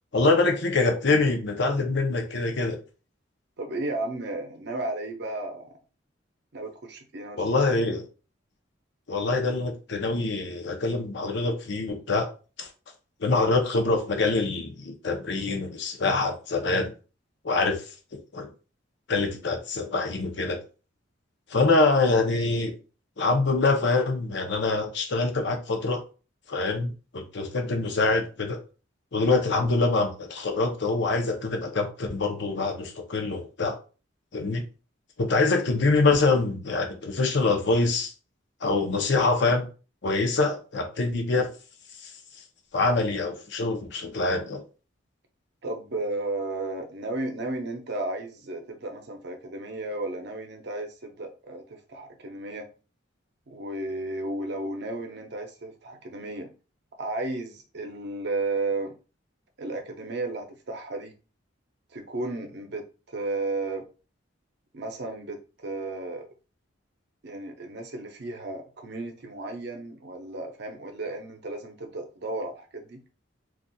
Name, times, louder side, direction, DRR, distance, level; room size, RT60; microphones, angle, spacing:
voice 1, 0.1-2.8 7.4-8.0 9.1-12.3 12.6-12.7 13.2-16.9 17.4-17.9 18.3-18.5 19.1-20.6 21.5-22.7 23.2-26.0 26.5-28.6 29.1-33.7 34.3-34.6 35.2-38.1 38.6-39.7 40.0-41.5 42.0-42.1 42.7-44.6, left 3 dB, 60° left, 0.6 m, -25 dB
voice 2, 3.6-5.7 6.5-7.6 45.6-52.7 53.5-56.5 57.0-58.9 59.6-61.1 61.9-63.9 64.7-66.3 67.2-73.0, right 2 dB, 60° right, 0.6 m, -33 dB
3.9 x 2.4 x 2.3 m
head